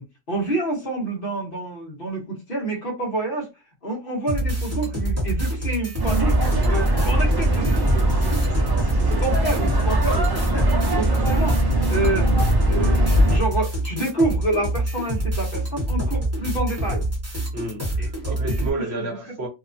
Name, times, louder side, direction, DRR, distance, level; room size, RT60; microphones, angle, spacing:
voice 1, 0.0-3.5 3.8-8.9 9.2-12.3 12.7-17.0 18.0-18.1 18.9-19.1, right 2 dB, 45° left, 1.1 m, -28 dB
sound 1, 4.3-18.7, right 1 dB, 15° right, 0.9 m, -26 dB
sound 2, 6.0-13.4, right 1 dB, 30° right, 0.4 m, -21 dB
voice 2, 8.9-9.3 17.5-19.5, right 2 dB, 55° right, 1.1 m, -31 dB
2.8 x 2.1 x 2.5 m
omnidirectional pair, 1.4 m